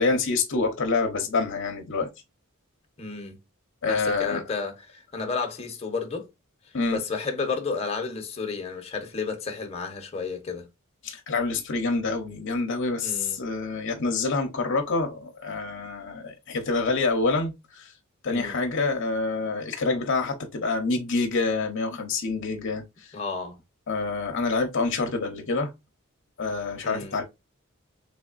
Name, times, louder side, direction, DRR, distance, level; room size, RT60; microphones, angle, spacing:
voice 1, 0.0-2.1 3.8-4.4 6.7-7.0 11.0-17.9 18.2-23.1 23.9-25.7 26.4-27.2, left 3 dB, 60° left, 0.8 m, -27 dB
voice 2, 3.0-3.4 3.8-6.3 6.9-10.7 13.0-13.4 18.3-18.6 23.1-23.6 26.8-27.2, left 4 dB, 30° left, 0.9 m, -32 dB
3.5 x 3.3 x 2.4 m
head